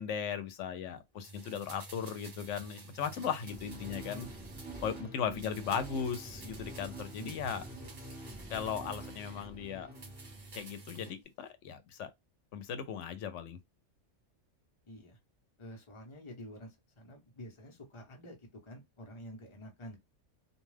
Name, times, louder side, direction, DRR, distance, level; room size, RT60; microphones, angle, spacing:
voice 1, 0.0-4.3 4.8-7.6 8.5-9.9 10.5-12.1 12.5-13.6, left 7 dB, 80° left, 0.9 m, -37 dB
sound 1, 1.2-5.1 5.4-9.5 9.9-11.2 11.5-11.6, right 3 dB, 40° right, 0.7 m, -50 dB
sound 2, 3.4-10.8, right 1 dB, 10° right, 0.9 m, -47 dB
voice 2, 5.3-5.6 7.2-7.8 14.9-15.2 15.6-20.0, equal, 30° left, 0.8 m, -49 dB
2.5 x 2.3 x 3.2 m
omnidirectional pair, 1.2 m